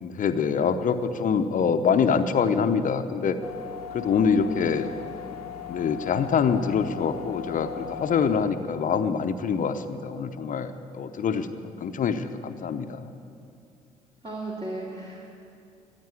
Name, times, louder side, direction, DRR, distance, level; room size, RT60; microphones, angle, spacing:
voice 1, 0.0-3.4 3.9-4.9 5.7-11.5 11.8-13.1, left 6 dB, 45° left, 9 dB, 0.8 m, -25 dB
sound 1, 3.4-8.4, left 8 dB, 90° left, 0.9 m, -38 dB
voice 2, 4.2-4.7 14.2-15.3, right 2 dB, 30° right, -4 dB, 2.5 m, -35 dB
15.0 x 9.0 x 8.2 m, 2.5 s
figure-of-eight pair, 50°, 19 cm